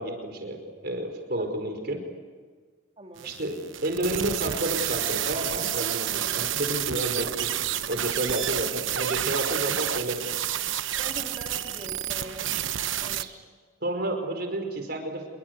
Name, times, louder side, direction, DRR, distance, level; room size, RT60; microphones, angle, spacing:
voice 1, 0.0-2.0 3.2-7.5 7.9-10.2 13.2-13.4 13.8-15.3, right 1 dB, 50° right, 5 dB, 5.1 m, -31 dB
voice 2, 3.0-3.3 9.7-9.8 11.0-12.5 13.0-13.3, right 2 dB, 30° right, 2 dB, 3.5 m, -41 dB
sound 1, 3.2-13.2, right 11 dB, 75° right, 1.0 m, -30 dB
27.0 x 23.0 x 8.3 m, 1.5 s
head